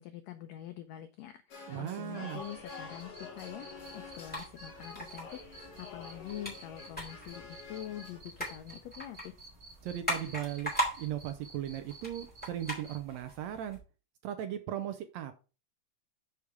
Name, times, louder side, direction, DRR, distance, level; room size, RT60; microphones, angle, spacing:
voice 1, 0.0-9.3, left 12 dB, 85° left, 9 dB, 1.5 m, -45 dB
sound 1, 1.5-8.2, left 4 dB, 50° left, 2.5 m, -48 dB
voice 2, 1.7-2.4 9.8-10.7 11.0-13.8 14.2-15.3, right 11 dB, 75° right, 8 dB, 1.6 m, -37 dB
Cricket, 2.4-13.0, right 2 dB, 45° right, 1.5 m, -54 dB
sound 2, 3.8-13.8, right 1 dB, 5° left, 3.3 m, -41 dB
7.0 x 5.0 x 4.6 m, 0.33 s
omnidirectional pair, 3.7 m